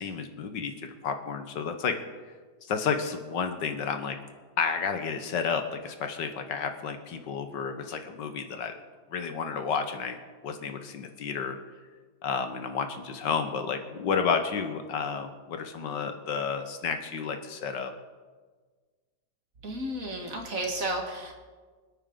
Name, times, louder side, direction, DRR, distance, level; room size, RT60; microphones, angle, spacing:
voice 1, 0.0-2.0 2.6-4.2 4.6-8.7 9.1-10.2 10.4-11.6 12.2-17.9, left 6 dB, 85° left, 7 dB, 1.8 m, -31 dB
voice 2, 19.6-21.3, right 1 dB, 50° right, 2 dB, 2.2 m, -32 dB
25.5 x 8.9 x 3.9 m, 1.4 s
omnidirectional pair, 1.9 m